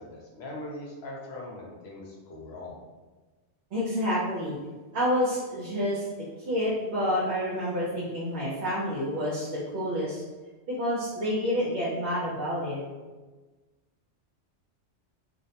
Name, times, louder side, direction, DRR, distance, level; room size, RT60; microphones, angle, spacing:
voice 1, 0.0-2.7, left 2 dB, 65° left, -2 dB, 0.9 m, -41 dB
voice 2, 3.7-4.6 4.9-6.1 6.5-10.2 10.7-12.8, equal, 70° right, -8 dB, 0.8 m, -28 dB
2.4 x 2.0 x 2.7 m, 1.3 s
omnidirectional pair, 1.2 m